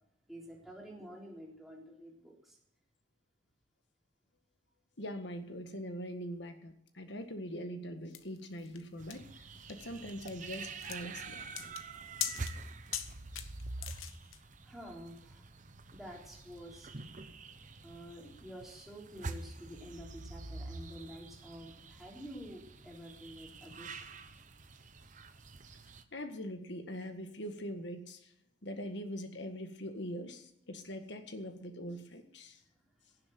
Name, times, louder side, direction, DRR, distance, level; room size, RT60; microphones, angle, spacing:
voice 1, 0.3-2.6 14.6-15.4 15.9-16.9 17.8-24.1, equal, ahead, -3 dB, 3.6 m, -49 dB
voice 2, 5.0-9.3 9.7-11.4 13.3-13.5 26.1-28.3 28.6-32.6, equal, 55° left, 7 dB, 1.7 m, -42 dB
sound 1, 8.1-14.4, left 10 dB, 80° left, 1.2 m, -42 dB
sound 2, 9.0-26.0, right 3 dB, 40° right, 0.9 m, -47 dB
16.5 x 7.5 x 7.8 m, 0.74 s
head